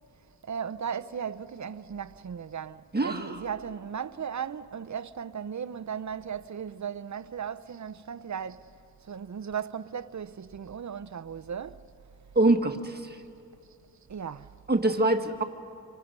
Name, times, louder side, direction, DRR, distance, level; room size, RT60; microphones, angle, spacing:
voice 1, 0.4-8.7 9.1-11.8 14.1-14.5, right 7 dB, 50° right, 0.6 m, -36 dB
voice 2, 2.9-3.3 12.3-13.2 14.7-15.4, right 2 dB, 25° right, 1.3 m, -24 dB
29.5 x 26.0 x 5.4 m
wide cardioid pair, 125°, 38 cm